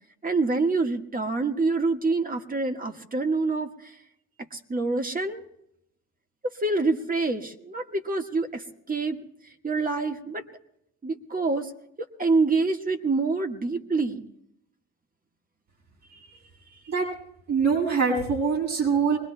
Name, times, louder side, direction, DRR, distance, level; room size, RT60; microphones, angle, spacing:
voice 1, 0.2-3.9 4.5-5.4 6.6-9.2 9.6-10.4 11.0-11.7 12.2-14.3, right 3 dB, 30° right, 4 dB, 1.5 m, -26 dB
voice 2, 17.5-19.2, right 5 dB, 60° right, -2 dB, 7.5 m, -23 dB
25.0 x 20.5 x 2.2 m, 0.79 s
cardioid pair, 90°, 30 cm